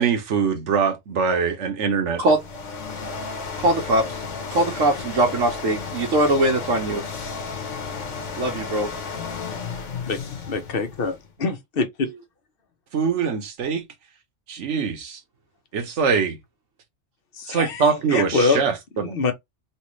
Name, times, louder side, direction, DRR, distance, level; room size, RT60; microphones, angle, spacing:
voice 1, 0.0-2.2 12.9-13.8 14.5-15.2 15.7-16.4 17.5-19.3, right 6 dB, 65° right, 1.2 m, -23 dB
sound 1, 2.1-11.3, left 5 dB, 70° left, 1.2 m, -33 dB
voice 2, 3.6-4.2 4.5-7.0 8.4-8.9, right 1 dB, 85° right, 1.3 m, -21 dB
voice 3, 10.5-12.1 17.3-18.6 19.0-19.3, left 4 dB, 50° left, 1.0 m, -25 dB
3.3 x 3.0 x 3.0 m
omnidirectional pair, 1.3 m